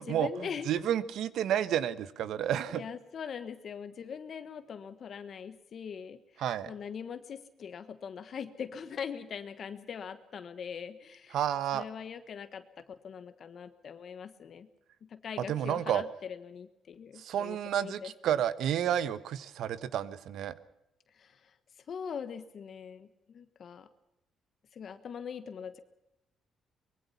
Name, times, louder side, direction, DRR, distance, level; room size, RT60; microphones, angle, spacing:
voice 1, 0.0-0.7 2.7-11.4 11.7-14.7 15.0-18.1 21.1-21.6 21.9-23.9 24.7-25.8, left 7 dB, 45° left, 10 dB, 1.3 m, -42 dB
voice 2, 0.7-2.8 6.4-6.7 11.3-11.8 15.5-16.0 17.2-20.5, right 10 dB, 75° right, 15 dB, 1.2 m, -30 dB
24.5 x 22.0 x 5.8 m, 0.87 s
cardioid pair, 155°, 0 cm